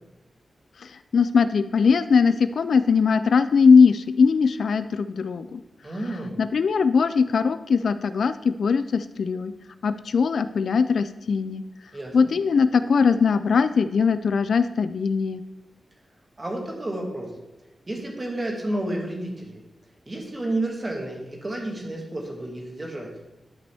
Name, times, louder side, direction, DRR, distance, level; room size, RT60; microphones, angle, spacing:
voice 1, 0.8-5.6 6.4-9.5 9.8-11.6 12.1-15.4, left 5 dB, 65° left, 12 dB, 0.3 m, -20 dB
voice 2, 5.8-6.4 11.9-12.1 16.4-17.3 17.9-19.6 20.1-23.1, right 1 dB, 20° right, 0 dB, 1.6 m, -30 dB
11.5 x 5.1 x 3.5 m, 0.97 s
wide cardioid pair, 165°, 0 cm